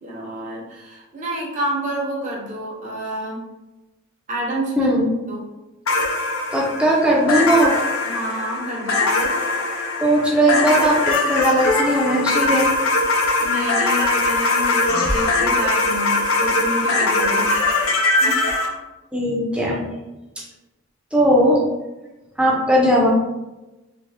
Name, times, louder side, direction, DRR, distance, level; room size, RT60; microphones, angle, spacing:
voice 1, 0.0-3.4 4.3-4.9 5.3-5.4 8.0-9.3 13.2-17.5 18.2-18.4, equal, 35° right, -4 dB, 0.8 m, -28 dB
sound 1, 5.9-18.7, left 2 dB, 80° left, 0.6 m, -21 dB
voice 2, 6.5-7.8 10.0-12.7 19.1-19.8 20.4-20.5 21.1-21.6 22.4-23.1, right 1 dB, 5° right, -3 dB, 0.5 m, -18 dB
3.3 x 2.6 x 2.8 m, 1.1 s
head